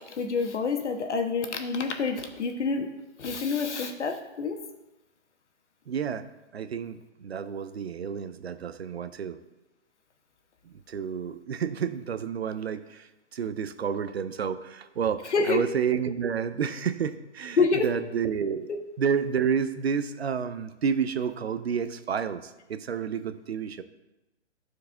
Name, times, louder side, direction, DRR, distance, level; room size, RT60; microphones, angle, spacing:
voice 1, 0.1-2.9 3.2-4.6 15.3-15.6 17.6-17.9 18.7-18.8, left 4 dB, 65° left, 5 dB, 1.2 m, -27 dB
voice 2, 5.9-6.3 6.5-9.4 10.7-18.7 19.0-23.8, right 7 dB, 60° right, 11 dB, 0.6 m, -30 dB
11.5 x 4.7 x 3.7 m, 0.99 s
hypercardioid pair, 175°, 37 cm